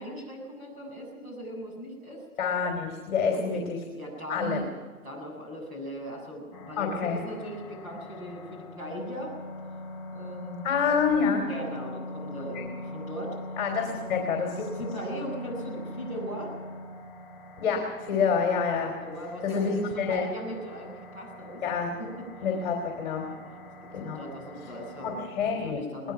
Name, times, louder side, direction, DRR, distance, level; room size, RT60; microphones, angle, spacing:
voice 1, 0.0-2.2 3.3-3.6 3.9-4.7 5.0-9.4 10.1-10.8 11.5-13.4 13.9-14.0 14.6-16.5 19.0-21.6 22.0-22.2 23.3-26.1, equal, 20° right, -2 dB, 7.8 m, -39 dB
voice 2, 2.4-3.8 4.3-4.6 6.8-7.2 10.6-11.5 12.5-12.6 13.6-14.6 17.6-18.9 19.4-20.2 21.6-21.9 22.4-23.3 23.9-24.2 25.0-25.8, left 6 dB, 40° left, 2 dB, 3.3 m, -27 dB
sound 1, 6.5-25.3, left 1 dB, 5° left, 2.8 m, -42 dB
22.0 x 20.0 x 6.0 m, 1.5 s
hypercardioid pair, 165°, 42 cm